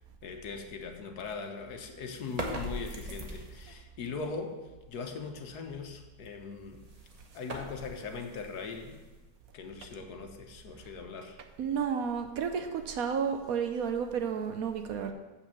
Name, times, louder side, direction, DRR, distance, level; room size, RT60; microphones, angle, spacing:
voice 1, 0.2-4.6 4.9-6.8 7.3-9.0 9.5-11.4, left 4 dB, 70° left, 5 dB, 1.4 m, -40 dB
sound 1, 2.2-3.8 6.5-9.5, right 1 dB, 30° right, 0.9 m, -41 dB
voice 2, 11.6-15.1, right 7 dB, 65° right, 7 dB, 1.0 m, -31 dB
7.4 x 5.6 x 6.9 m, 1.2 s
omnidirectional pair, 1.8 m